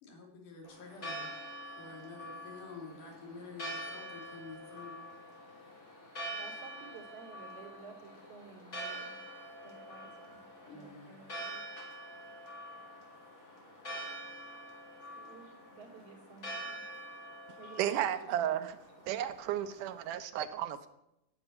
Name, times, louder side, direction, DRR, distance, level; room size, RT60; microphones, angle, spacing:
voice 1, 0.0-1.3 1.6-5.1 10.7-11.2, left 3 dB, 75° left, 0 dB, 4.4 m, -49 dB
Church bell, 0.6-20.1, equal, 25° left, 3.3 m, -46 dB
voice 2, 6.4-9.2 9.6-11.6 15.1-16.8 17.6-18.0 18.3-18.6, right 4 dB, 50° right, -1 dB, 3.6 m, -53 dB
voice 3, 17.8-18.8 19.1-20.9, right 11 dB, 80° right, 11 dB, 2.3 m, -33 dB
9.8 x 8.0 x 9.6 m, 0.85 s
omnidirectional pair, 3.7 m